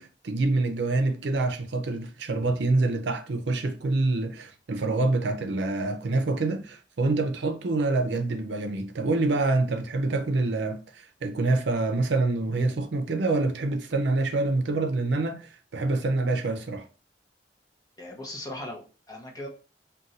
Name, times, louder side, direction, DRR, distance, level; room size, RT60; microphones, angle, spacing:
voice 1, 0.0-16.9, right 2 dB, 80° right, 0.5 m, -26 dB
voice 2, 18.0-19.5, left 1 dB, 20° left, 0.8 m, -38 dB
2.5 x 2.2 x 4.0 m
head